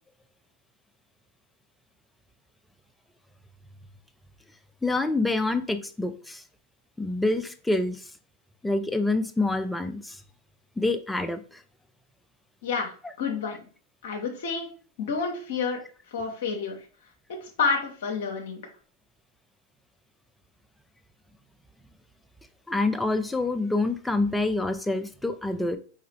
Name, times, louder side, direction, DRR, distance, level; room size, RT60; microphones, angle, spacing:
voice 1, 4.8-6.4 7.0-8.0 8.6-10.2 10.8-11.6 22.7-25.8, left 2 dB, 5° left, 9 dB, 0.4 m, -26 dB
voice 2, 12.6-12.9 13.2-13.7 14.0-14.7 15.0-15.8 16.1-16.9 17.3-18.6, left 5 dB, 55° left, 2 dB, 0.7 m, -29 dB
4.7 x 3.5 x 3.1 m, 0.40 s
figure-of-eight pair, 90°, 0 cm